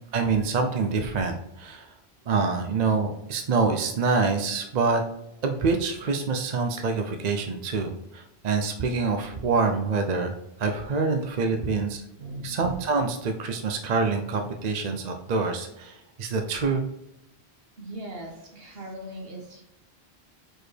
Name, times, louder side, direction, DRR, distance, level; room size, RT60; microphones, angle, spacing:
voice 1, 0.1-1.9 2.3-5.0 5.4-10.3 10.6-12.0 12.4-16.8, right 4 dB, 50° right, 5 dB, 0.6 m, -26 dB
voice 2, 12.2-12.5 17.8-19.6, right 1 dB, 70° right, 1 dB, 1.5 m, -39 dB
4.9 x 4.6 x 4.4 m, 0.82 s
omnidirectional pair, 1.0 m